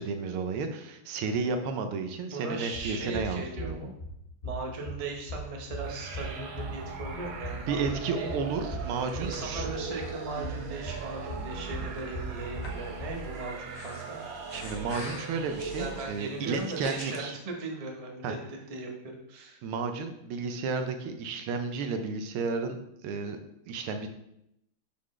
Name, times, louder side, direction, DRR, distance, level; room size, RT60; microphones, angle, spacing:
voice 1, 0.0-3.9 7.7-9.6 14.5-17.3 18.2-18.3 19.6-22.8 23.0-23.4 23.6-24.1, right 4 dB, 85° right, 7 dB, 1.6 m, -32 dB
voice 2, 2.3-3.9 4.4-8.4 9.2-14.2 15.8-19.6, right 3 dB, 40° right, 0 dB, 0.5 m, -38 dB
sound 1, 2.7-13.1, equal, 35° left, 1.7 m, -40 dB
sound 2, 5.8-16.4, right 5 dB, 70° right, 1.7 m, -40 dB
Breathing, 8.7-17.2, left 3 dB, 65° left, 1.6 m, -47 dB
9.7 x 4.0 x 3.2 m, 0.80 s
omnidirectional pair, 2.4 m